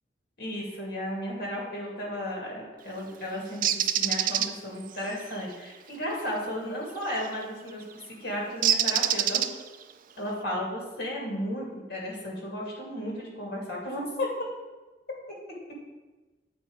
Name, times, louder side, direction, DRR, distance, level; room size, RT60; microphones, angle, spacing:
voice 1, 0.4-9.5 10.2-14.3, equal, 60° left, -2 dB, 2.4 m, -34 dB
Bird, 3.6-4.5 7.1-7.3 8.6-9.8, right 10 dB, 50° right, 0.4 m, -25 dB
8.4 x 4.3 x 5.0 m, 1.2 s
head